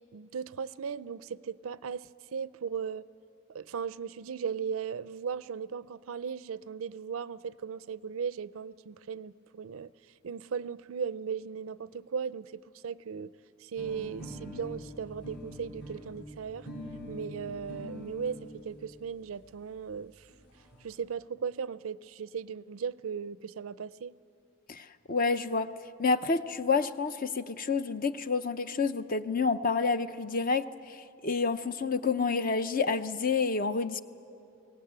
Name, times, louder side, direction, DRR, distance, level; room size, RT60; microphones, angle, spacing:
voice 1, 0.0-3.0 3.5-9.9 10.2-13.3 13.6-16.7 17.1-20.3 20.8-24.2, right 6 dB, 80° right, 18 dB, 0.5 m, -37 dB
sound 1, 13.8-18.3 19.2-19.3 19.5-19.6 19.9-20.0 20.2-20.8, equal, 60° left, 5.7 m, -44 dB
voice 2, 24.7-25.7 26.0-31.0 31.2-34.0, left 4 dB, 40° left, 11 dB, 0.6 m, -29 dB
23.0 x 18.0 x 8.8 m, 2.6 s
head